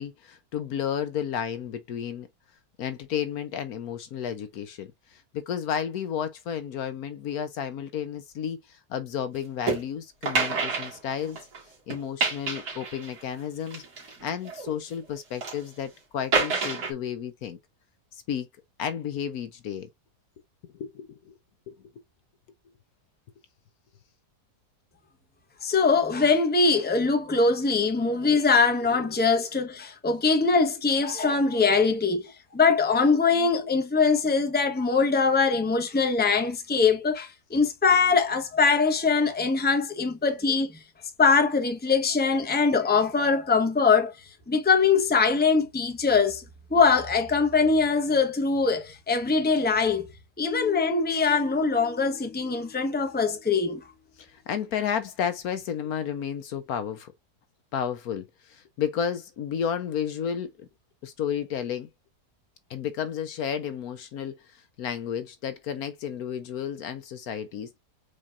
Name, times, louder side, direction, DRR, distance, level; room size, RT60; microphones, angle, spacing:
voice 1, 0.0-2.3 2.8-11.4 11.9-13.8 14.2-17.6 18.1-18.5 18.8-19.9 20.6-21.4 21.7-21.8 54.2-57.1 57.7-60.7 61.0-61.9 62.7-64.4 64.8-67.8, left 8 dB, 65° left, 1.2 m, -32 dB
sound 1, 9.7-9.8 10.2-11.6 11.9-13.2 13.7-14.7 15.2-15.6 16.3-16.9, right 4 dB, 70° right, 2.7 m, -28 dB
voice 2, 25.6-40.7 41.2-44.1 44.5-46.4 46.7-50.1 50.4-53.8, left 4 dB, 10° left, 0.8 m, -22 dB
sound 2, 50.5-53.6, left 11 dB, 40° left, 1.2 m, -40 dB
5.0 x 4.2 x 2.5 m
omnidirectional pair, 1.7 m